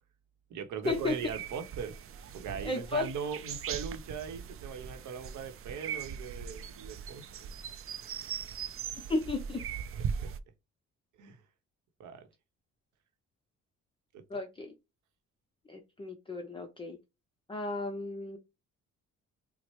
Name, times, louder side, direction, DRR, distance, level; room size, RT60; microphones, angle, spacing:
voice 1, 0.5-2.0 2.3-7.5 10.2-10.3 11.2-11.4 12.0-12.3 14.1-14.4, right 7 dB, 80° right, 0.8 m, -40 dB
sound 1, 0.8-10.4, right 7 dB, 50° right, 0.5 m, -40 dB
voice 2, 2.6-3.1 9.1-9.6 14.3-14.7 15.7-17.0 17.5-18.4, left 3 dB, 15° left, 0.6 m, -34 dB
4.3 x 2.1 x 3.0 m
cardioid pair, 90°, 30 cm